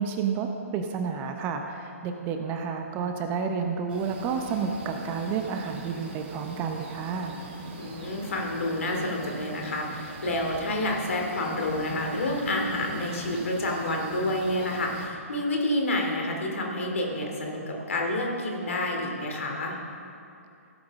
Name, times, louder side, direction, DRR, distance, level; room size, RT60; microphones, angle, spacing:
voice 1, 0.0-7.3, right 6 dB, 25° right, 5 dB, 0.8 m, -30 dB
sound 1, 3.9-15.1, right 3 dB, 40° right, 1.8 m, -42 dB
voice 2, 7.8-19.8, left 1 dB, 60° left, 0 dB, 2.5 m, -29 dB
16.5 x 8.7 x 3.7 m, 2.6 s
figure-of-eight pair, 130°, 8 cm